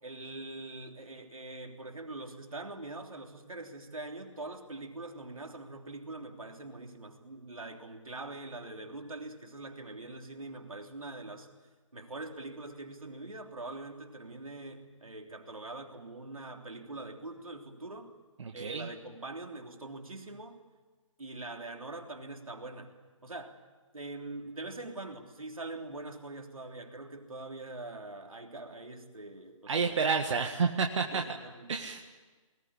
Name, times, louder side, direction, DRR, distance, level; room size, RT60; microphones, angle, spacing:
voice 1, 0.0-11.5 11.9-18.2 18.5-20.6 21.2-22.9 23.2-23.6 23.9-30.3 31.1-31.8, right 2 dB, 85° right, 3 dB, 3.3 m, -43 dB
voice 2, 18.4-18.9 29.7-31.2 31.7-32.1, right 5 dB, 60° right, 4 dB, 1.7 m, -30 dB
21.0 x 18.5 x 9.9 m, 1.3 s
figure-of-eight pair, 145°, 17 cm